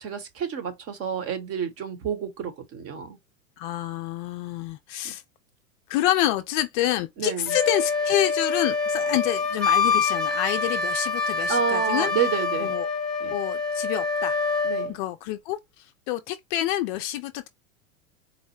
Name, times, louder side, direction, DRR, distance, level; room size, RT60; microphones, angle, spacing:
voice 1, 0.0-3.2 5.0-5.1 7.2-7.5 11.5-12.8 13.2-13.4 14.6-15.0, right 7 dB, 35° right, 1.0 m, -29 dB
voice 2, 3.6-5.2 5.9-12.1 12.6-12.9 13.3-14.4 14.9-17.5, left 13 dB, 40° left, 0.4 m, -27 dB
Wind instrument woodwind instrument, 7.5-14.9, left 4 dB, ahead, 0.8 m, -26 dB
4.1 x 2.1 x 3.0 m
hypercardioid pair, 100°, 41 cm